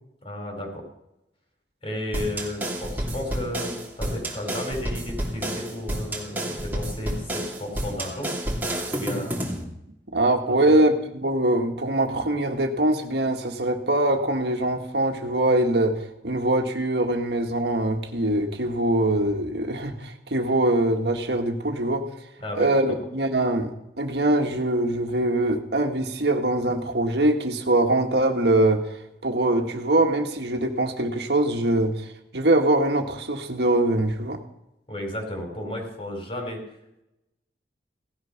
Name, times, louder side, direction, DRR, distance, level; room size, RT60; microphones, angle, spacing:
voice 1, 0.2-0.8 1.8-8.3 8.9-9.5 10.6-10.8 22.4-22.9 34.9-36.6, left 1 dB, 30° left, 1 dB, 4.8 m, -33 dB
sound 1, 2.1-9.6, right 1 dB, 10° right, 2.9 m, -30 dB
voice 2, 10.1-22.1 22.6-23.7 24.0-28.8 29.2-34.4, right 1 dB, 70° right, 4 dB, 1.7 m, -23 dB
17.5 x 13.5 x 5.9 m, 0.87 s
head